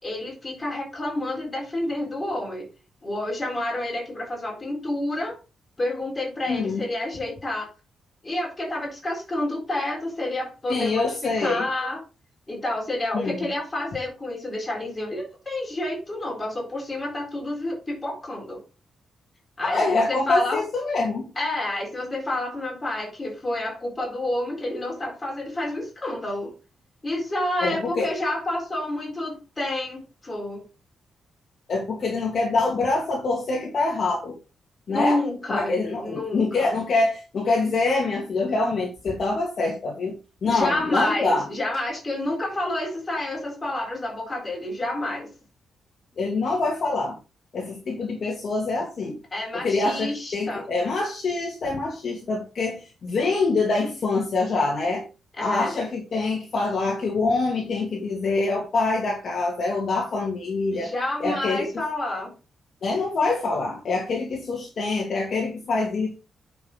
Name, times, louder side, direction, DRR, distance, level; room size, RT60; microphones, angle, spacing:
voice 1, 0.0-2.7 3.0-5.4 5.8-7.7 8.2-12.0 12.5-18.6 19.6-20.6 21.4-26.5 27.0-30.6 34.9-36.7 40.4-45.3 49.3-50.7 55.4-55.8 60.7-62.3, left 1 dB, 15° left, -1 dB, 4.1 m, -29 dB
voice 2, 6.5-6.8 10.7-11.7 13.1-13.4 19.6-21.3 27.6-28.1 31.7-34.4 34.9-35.2 35.5-41.5 46.2-47.2 47.5-49.2 49.5-55.0 55.4-60.9 61.2-61.8 62.8-66.1, left 3 dB, 40° left, -1 dB, 2.5 m, -25 dB
10.0 x 5.9 x 3.8 m, 0.30 s
wide cardioid pair, 175°, 0 cm